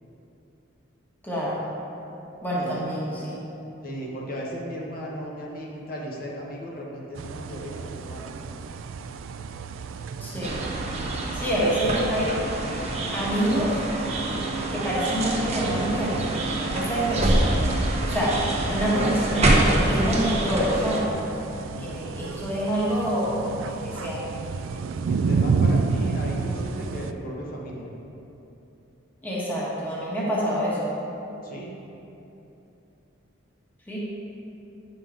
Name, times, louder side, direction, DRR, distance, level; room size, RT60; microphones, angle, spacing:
voice 1, 1.2-1.6 2.4-3.4 10.2-10.7 11.4-12.4 13.1-13.8 14.7-17.6 18.1-18.4 18.7-21.2 21.8-24.2 29.2-30.9 33.9-34.0, equal, 10° left, -8 dB, 1.2 m, -26 dB
voice 2, 3.8-8.3 21.7-22.0 25.1-27.9 31.4-31.8, equal, 45° left, -3 dB, 0.9 m, -36 dB
sound 1, 7.2-27.1, right 4 dB, 80° right, 0.3 m, -32 dB
sound 2, 10.4-21.0, right 1 dB, 30° right, 0.8 m, -26 dB
8.9 x 5.3 x 3.7 m, 2.9 s
head